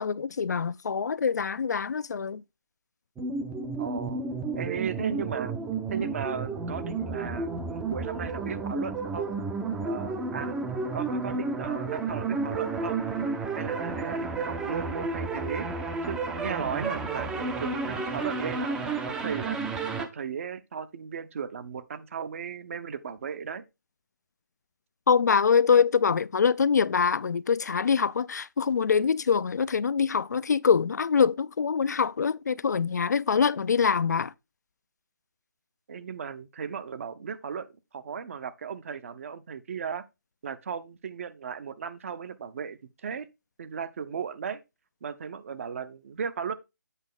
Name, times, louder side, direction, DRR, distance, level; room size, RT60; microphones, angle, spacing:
voice 1, 0.0-2.4 25.1-34.3, left 6 dB, 60° left, 0.4 m, -24 dB
sound 1, 3.2-20.1, right 4 dB, 5° right, 0.5 m, -31 dB
voice 2, 3.8-4.2 4.5-5.5 5.9-9.3 9.8-10.6 10.9-13.0 13.6-15.7 16.0-19.6 20.0-23.6 35.9-40.0 40.4-43.3 43.6-44.6 45.0-46.5, right 6 dB, 45° right, 0.8 m, -36 dB
8.2 x 5.2 x 3.7 m
figure-of-eight pair, 150°, 10 cm